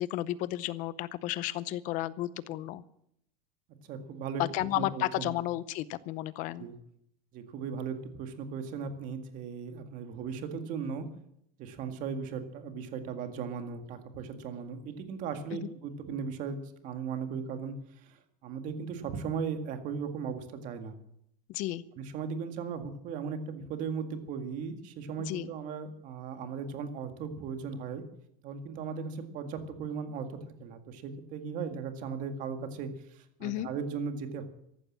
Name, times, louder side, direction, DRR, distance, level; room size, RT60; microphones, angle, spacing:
voice 1, 0.0-2.8 4.4-6.7 15.6-15.7 21.5-21.8 25.3-25.5 33.4-33.7, left 15 dB, 40° left, 17 dB, 0.7 m, -33 dB
voice 2, 3.8-4.4 4.8-5.3 6.6-6.8 7.3-11.1 11.6-21.0 22.0-28.0 28.4-34.4, right 6 dB, 40° right, 7 dB, 1.9 m, -37 dB
14.5 x 12.0 x 7.3 m, 0.75 s
supercardioid pair, 160°, 21 cm